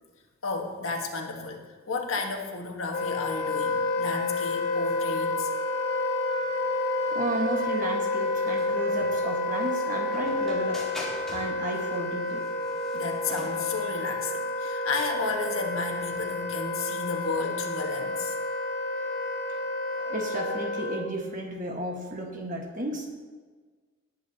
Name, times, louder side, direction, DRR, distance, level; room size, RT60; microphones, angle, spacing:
voice 1, 0.4-5.5 12.9-18.4, left 3 dB, 85° left, 2 dB, 1.5 m, -33 dB
Wind instrument woodwind instrument, 2.9-21.1, left 2 dB, 50° left, 1.4 m, -29 dB
sound 1, 3.9-13.7, left 1 dB, ahead, 2.1 m, -46 dB
voice 2, 7.1-10.9 11.3-12.5 20.0-23.1, right 1 dB, 40° right, 1 dB, 1.6 m, -33 dB
19.0 x 8.4 x 2.9 m, 1.4 s
head